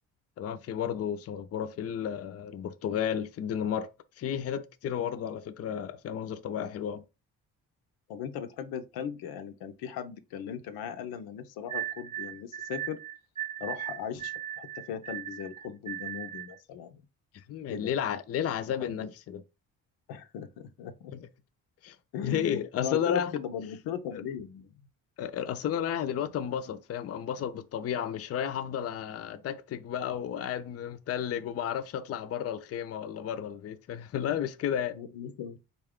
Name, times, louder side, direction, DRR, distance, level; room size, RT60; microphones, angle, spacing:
voice 1, 0.4-3.9 4.2-7.0 17.3-19.4 21.1-21.3 21.8-22.0 22.2-23.3 24.1-24.2 25.2-35.0, left 9 dB, 45° left, 0.4 m, -32 dB
voice 2, 8.1-13.0 13.6-17.0 17.7-17.9 18.8-19.1 20.1-21.1 22.1-24.7 34.9-35.6, left 8 dB, 85° left, 0.6 m, -38 dB
sound 1, 11.7-16.6, right 12 dB, 15° right, 0.5 m, -38 dB
4.1 x 2.3 x 3.6 m
cardioid pair, 75°, 36 cm